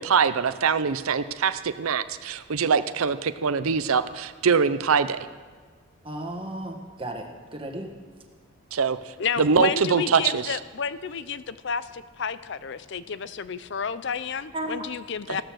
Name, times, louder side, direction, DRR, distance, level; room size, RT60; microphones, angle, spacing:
voice 1, 0.0-5.3 8.7-9.0 9.4-10.6, right 6 dB, 85° right, 12 dB, 0.6 m, -23 dB
voice 2, 6.0-7.9 14.5-14.8, right 1 dB, 25° right, 3 dB, 1.6 m, -34 dB
voice 3, 9.2-15.4, left 6 dB, 55° left, 15 dB, 0.5 m, -31 dB
15.5 x 13.0 x 6.3 m, 1.5 s
head